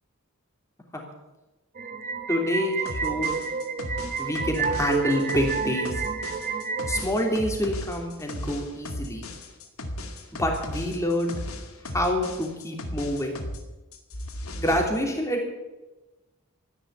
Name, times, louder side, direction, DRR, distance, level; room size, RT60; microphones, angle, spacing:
sound 1, 1.8-7.0, right 5 dB, 40° right, 1.0 m, -30 dB
voice 1, 2.3-3.4 4.2-6.0 6.9-9.2 10.4-11.4 11.9-13.4 14.6-15.5, left 1 dB, 15° left, 1 dB, 3.1 m, -27 dB
sound 2, 2.9-13.6 13.9-14.9, left 1 dB, 80° left, 2.0 m, -36 dB
13.5 x 11.0 x 8.2 m, 1.1 s
head